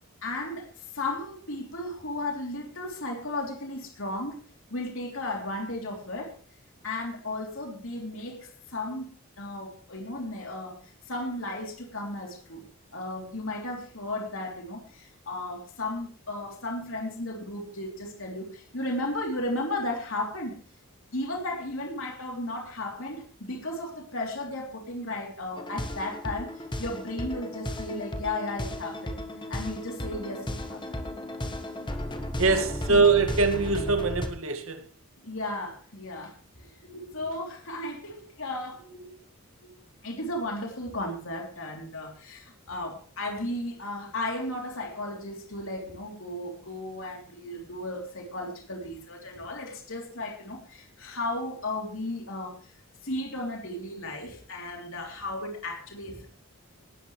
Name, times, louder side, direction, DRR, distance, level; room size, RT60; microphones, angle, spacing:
voice 1, 0.2-4.4 4.7-6.3 6.8-9.1 9.4-12.6 12.9-20.6 21.1-29.2 29.5-31.0 32.4-33.0 35.2-36.3 36.8-39.2 39.6-39.7 40.0-52.7 53.0-56.3, left 1 dB, 65° left, 3.4 m, -35 dB
sound 1, 25.6-34.3, left 1 dB, 20° left, 1.4 m, -35 dB
voice 2, 32.4-34.9, right 4 dB, 65° right, 2.1 m, -23 dB
19.0 x 12.5 x 3.3 m
head